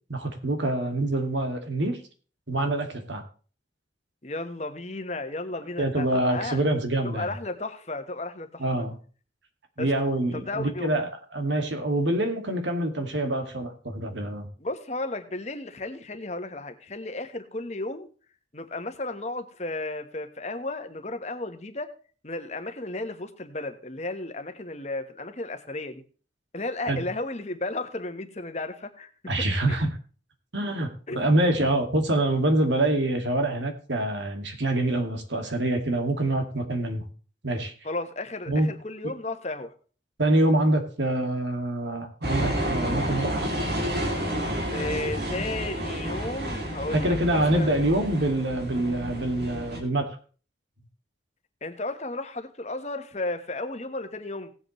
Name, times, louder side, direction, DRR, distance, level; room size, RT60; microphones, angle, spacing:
voice 1, 0.1-2.0 2.5-3.2 5.8-7.3 8.6-9.0 9.8-14.5 26.8-27.0 29.3-30.0 30.5-30.9 31.1-37.1 37.4-37.7 38.5-38.8 40.2-43.5 46.9-50.1, right 1 dB, 85° right, 6 dB, 2.3 m, -25 dB
voice 2, 4.2-6.6 7.0-8.6 9.8-9.9 10.3-10.9 14.6-18.1 18.5-21.9 22.2-26.0 26.5-29.1 29.7-29.8 31.1-31.2 37.8-39.7 44.7-47.7 51.6-54.5, left 2 dB, 40° left, 7 dB, 1.2 m, -34 dB
sound 1, 42.2-49.8, equal, 60° right, 2.9 m, -30 dB
18.0 x 8.0 x 3.2 m, 0.38 s
head